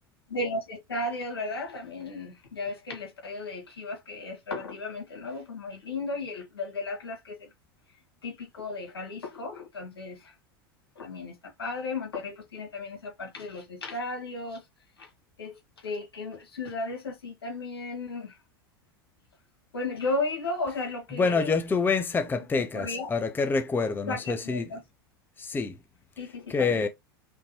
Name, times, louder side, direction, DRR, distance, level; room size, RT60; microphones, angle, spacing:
voice 1, 0.3-7.5 8.2-10.3 11.0-14.7 15.0-15.1 15.4-18.4 19.7-21.5 22.7-23.1 24.1-24.8 26.2-26.9, left 2 dB, 85° left, 2.0 m, -35 dB
voice 2, 21.1-24.7 25.4-25.8 26.5-26.9, left 4 dB, 15° left, 0.9 m, -27 dB
5.4 x 3.1 x 3.0 m
hypercardioid pair, 85°, 13 cm